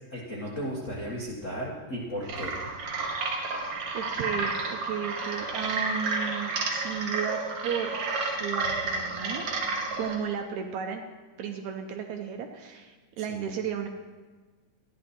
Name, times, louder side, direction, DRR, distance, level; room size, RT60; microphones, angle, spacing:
voice 1, 0.1-2.6 13.2-13.4, equal, 50° left, -5 dB, 0.9 m, -35 dB
sound 1, 2.2-10.2, right 3 dB, 55° right, 1.7 m, -31 dB
voice 2, 3.9-8.0 8.4-9.4 10.0-11.0 11.4-13.9, right 7 dB, 75° right, 4 dB, 1.9 m, -34 dB
14.0 x 10.5 x 4.3 m, 1.4 s
omnidirectional pair, 3.8 m